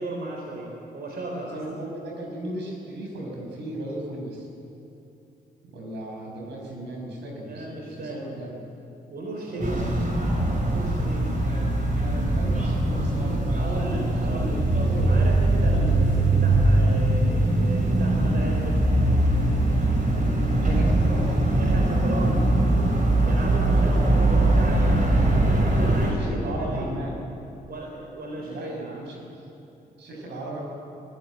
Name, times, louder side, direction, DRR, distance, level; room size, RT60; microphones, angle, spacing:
voice 1, 0.0-1.6 6.4-6.5 7.5-8.2 9.1-10.2 10.6-11.3 13.5-14.7 15.1-18.8 21.6-22.5 23.2-25.0 25.4-26.9 27.7-29.0, right 1 dB, 65° right, 0 dB, 3.9 m, -35 dB
voice 2, 1.4-4.5 5.7-8.6 9.5-9.9 12.2-15.8 20.6-21.7 23.7-24.3 26.2-27.2 28.4-29.2 30.0-30.6, right 1 dB, 85° right, -1 dB, 6.0 m, -36 dB
sound 1, 9.6-26.1, right 1 dB, 45° right, 6.0 m, -21 dB
23.5 x 15.0 x 9.5 m, 2.8 s
supercardioid pair, 50°, 18 cm